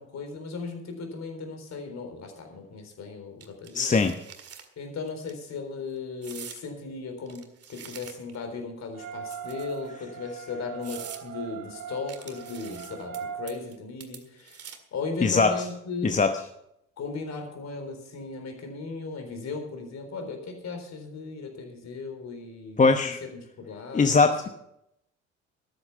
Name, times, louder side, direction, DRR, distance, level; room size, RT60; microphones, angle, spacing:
voice 1, 0.0-3.9 4.8-7.4 7.7-16.1 17.0-24.2, left 4 dB, 50° left, 5 dB, 4.0 m, -37 dB
sound 1, 3.4-4.7 5.1-5.3 6.2-6.6 7.3-8.4 9.3-9.9 10.4-10.5 10.8-11.2 12.1-13.2 13.5-13.8 14.0-14.9, right 7 dB, 45° right, 1.9 m, -45 dB
voice 2, 3.7-4.2 15.2-15.6 16.0-16.4 22.8-23.2 23.9-24.5, left 4 dB, 20° left, 7 dB, 0.9 m, -21 dB
sound 2, 8.9-13.4, right 8 dB, 65° right, 1.6 m, -40 dB
13.0 x 11.0 x 5.6 m, 0.78 s
figure-of-eight pair, 50°, 35 cm